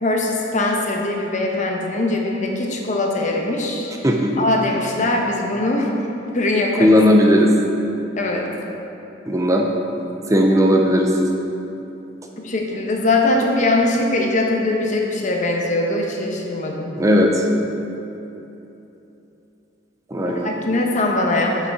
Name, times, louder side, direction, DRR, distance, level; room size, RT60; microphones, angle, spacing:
voice 1, 0.0-3.9 4.4-5.9 6.3-6.9 8.2-8.5 12.4-16.9 20.3-21.6, left 2 dB, 40° left, 0 dB, 0.9 m, -21 dB
voice 2, 6.8-7.5 9.3-9.7 10.3-11.1 17.0-17.5 20.1-20.5, equal, 15° right, 1 dB, 0.5 m, -16 dB
8.0 x 5.7 x 4.7 m, 2.9 s
head